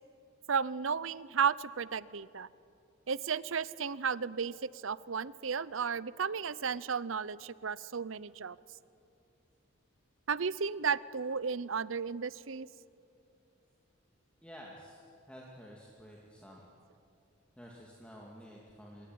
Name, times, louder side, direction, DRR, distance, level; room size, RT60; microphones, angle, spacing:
voice 1, 0.5-2.5 3.1-8.6 10.3-12.7, right 6 dB, 75° right, 19 dB, 0.7 m, -34 dB
voice 2, 14.4-15.0 15.3-16.6 17.6-19.1, equal, 5° left, -3 dB, 2.6 m, -51 dB
26.5 x 22.0 x 9.5 m, 2.6 s
head